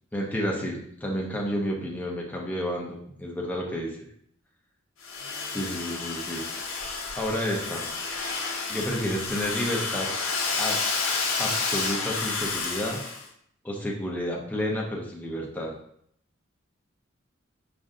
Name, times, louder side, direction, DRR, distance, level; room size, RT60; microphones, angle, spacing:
voice 1, 0.1-3.9 5.5-6.5 6.7-7.9 8.7-10.1 10.6-10.8 11.1-13.0 13.6-15.7, equal, 10° left, -2 dB, 0.5 m, -31 dB
Domestic sounds home sounds, 5.0-13.2, left 4 dB, 80° left, 0.7 m, -30 dB
5.1 x 2.5 x 2.5 m, 0.67 s
head